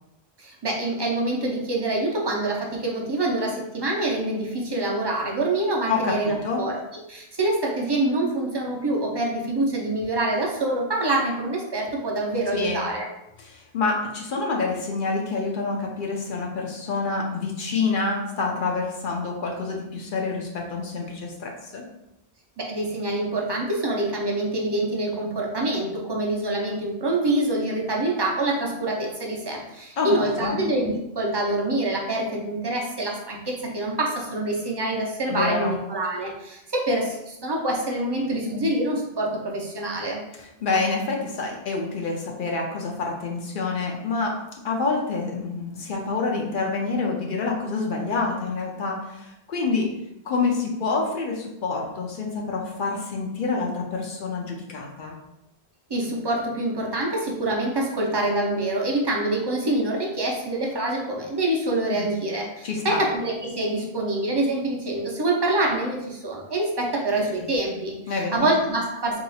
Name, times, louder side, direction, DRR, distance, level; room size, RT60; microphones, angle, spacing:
voice 1, 0.4-6.8 7.1-13.1 22.6-40.2 55.9-69.2, right 2 dB, 30° right, -1 dB, 0.5 m, -26 dB
voice 2, 5.9-6.6 12.5-12.8 13.4-21.8 30.0-30.6 35.3-35.7 40.4-49.9 50.2-55.2 61.9-62.1 62.6-63.0 68.1-68.5, left 4 dB, 60° left, 0 dB, 0.7 m, -27 dB
2.8 x 2.3 x 4.0 m, 0.86 s
omnidirectional pair, 1.0 m